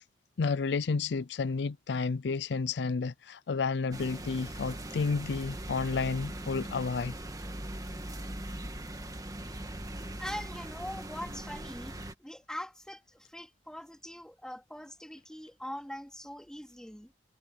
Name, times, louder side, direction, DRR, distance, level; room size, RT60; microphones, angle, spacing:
voice 1, 0.4-7.1, left 4 dB, 70° left, 0.5 m, -31 dB
sound 1, 3.9-12.1, right 1 dB, 20° right, 1.6 m, -40 dB
voice 2, 10.2-17.1, equal, 5° left, 3.3 m, -42 dB
head